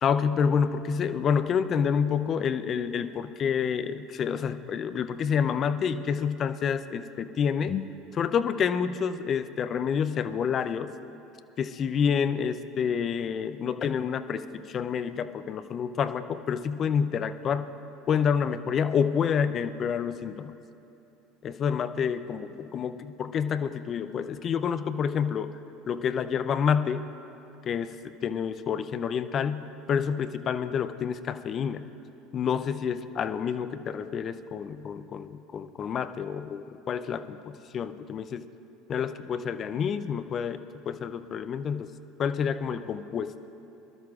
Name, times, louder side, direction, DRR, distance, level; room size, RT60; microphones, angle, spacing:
voice 1, 0.0-7.9 8.1-10.9 11.6-17.7 18.1-20.5 21.4-25.6 25.9-27.0 27.7-28.0 28.2-31.9 32.3-38.5 38.9-41.9 42.2-43.3, left 7 dB, 40° left, 12 dB, 0.6 m, -28 dB
24.0 x 12.5 x 2.5 m, 2.9 s
hypercardioid pair, 75°, 0 cm